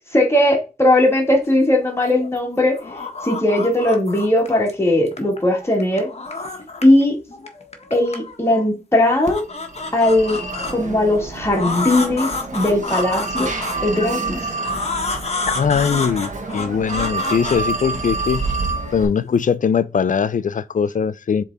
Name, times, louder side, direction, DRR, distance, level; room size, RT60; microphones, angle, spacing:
voice 1, 0.1-2.8 3.2-6.1 6.8-7.2 7.9-9.4 9.9-10.4 10.7-13.5 13.8-14.4, left 1 dB, 20° left, 2.2 m, -18 dB
sound 1, 1.8-2.4 2.7-4.7 5.1-7.0 7.3-8.6 9.0-10.7 11.4-14.0 14.6-18.3, left 3 dB, 50° left, 1.3 m, -29 dB
Telephone, 9.3-19.0, right 3 dB, 60° right, 1.4 m, -28 dB
voice 2, 15.5-18.5 18.9-21.4, left 7 dB, 65° left, 0.5 m, -21 dB
7.3 x 3.8 x 4.1 m
wide cardioid pair, 75°, 14 cm